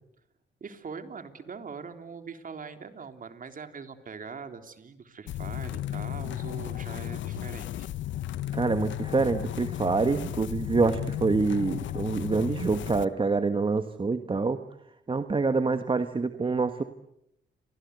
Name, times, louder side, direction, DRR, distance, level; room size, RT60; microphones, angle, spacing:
voice 1, 0.6-7.9, right 5 dB, 45° right, 7 dB, 3.4 m, -42 dB
sound 1, 5.3-13.1, left 13 dB, 75° left, 1.0 m, -34 dB
voice 2, 8.5-14.6 15.1-16.8, right 4 dB, 25° right, 8 dB, 1.5 m, -26 dB
30.0 x 24.5 x 8.2 m, 0.79 s
cardioid pair, 90°, 20 cm